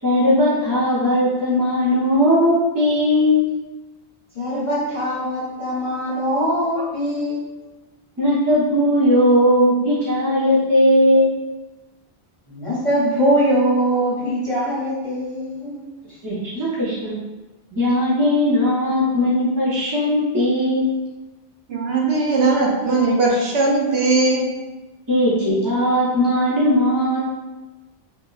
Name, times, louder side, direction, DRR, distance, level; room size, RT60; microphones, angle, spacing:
voice 1, 0.0-3.4 8.2-11.3 16.2-17.2 17.7-20.9 25.1-27.2, left 1 dB, 30° right, -8 dB, 0.4 m, -18 dB
voice 2, 4.3-7.4 12.5-16.2, equal, 35° left, -8 dB, 0.6 m, -22 dB
voice 3, 21.7-24.5, right 3 dB, 75° right, -2 dB, 0.8 m, -19 dB
3.0 x 2.3 x 2.3 m, 1.1 s
omnidirectional pair, 1.1 m